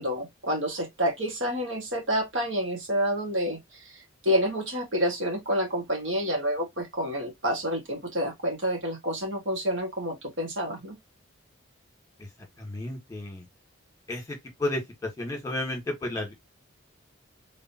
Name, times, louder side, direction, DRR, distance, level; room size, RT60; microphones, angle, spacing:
voice 1, 0.0-4.0 4.2-11.0, equal, 65° right, 2.0 m, -28 dB
voice 2, 12.6-13.4 14.1-16.3, left 1 dB, 15° left, 1.7 m, -32 dB
3.9 x 3.7 x 2.9 m
head